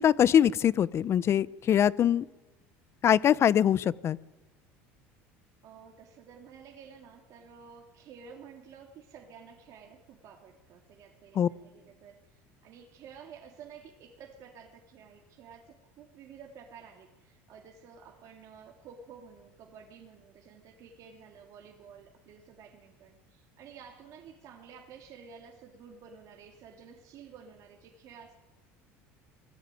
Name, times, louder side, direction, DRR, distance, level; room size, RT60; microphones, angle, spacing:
voice 1, 0.0-2.2 3.0-4.2 11.4-11.5, left 9 dB, 40° left, 19 dB, 0.8 m, -23 dB
voice 2, 5.6-28.3, right 6 dB, 55° right, 1 dB, 3.1 m, -51 dB
22.5 x 15.0 x 9.3 m, 1.1 s
supercardioid pair, 95°, 7 cm